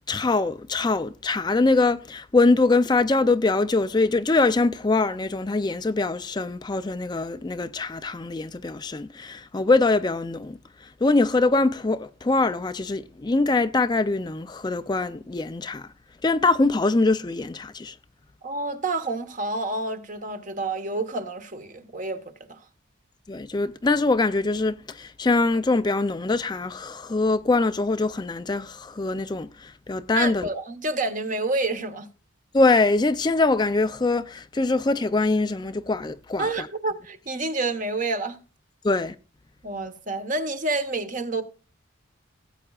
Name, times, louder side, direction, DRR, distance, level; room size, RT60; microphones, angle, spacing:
voice 1, 0.1-15.9 16.2-18.0 23.3-30.5 32.5-36.7 38.8-39.1, left 3 dB, 20° left, 0.4 m, -23 dB
voice 2, 18.4-22.2 22.5-22.6 30.1-32.1 36.4-38.4 39.6-41.4, right 2 dB, 40° right, 1.2 m, -28 dB
17.0 x 8.7 x 2.4 m
head